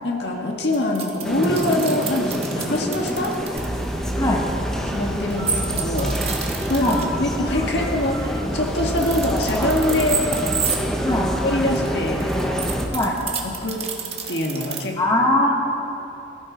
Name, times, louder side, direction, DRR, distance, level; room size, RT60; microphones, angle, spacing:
voice 1, 0.0-3.4 4.2-4.4 4.9-6.2 6.7-10.3 11.4-12.2 13.4-13.9 14.3-15.0, left 1 dB, 65° left, 1 dB, 1.8 m, -24 dB
sound 1, 0.7-3.7 5.4-7.1 8.8-10.8 11.7-14.8, right 6 dB, 35° right, 1.6 m, -29 dB
sound 2, 1.2-12.9, equal, 5° left, 1.2 m, -28 dB
Telephone, 3.6-13.3, right 1 dB, 65° right, 2.0 m, -31 dB
voice 2, 15.0-15.5, left 1 dB, 20° left, -2 dB, 1.9 m, -20 dB
22.5 x 14.5 x 4.1 m, 2.8 s
head